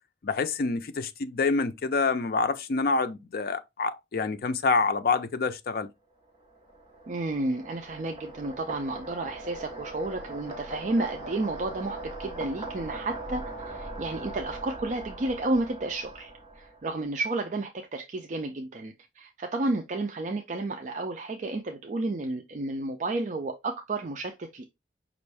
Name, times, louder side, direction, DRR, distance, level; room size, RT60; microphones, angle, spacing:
voice 1, 0.2-5.9, left 4 dB, 55° left, 0.5 m, -27 dB
sound 1, 6.3-17.0, right 2 dB, 25° right, 1.0 m, -40 dB
voice 2, 7.1-24.6, right 2 dB, 45° right, 0.4 m, -32 dB
5.3 x 2.5 x 3.3 m
head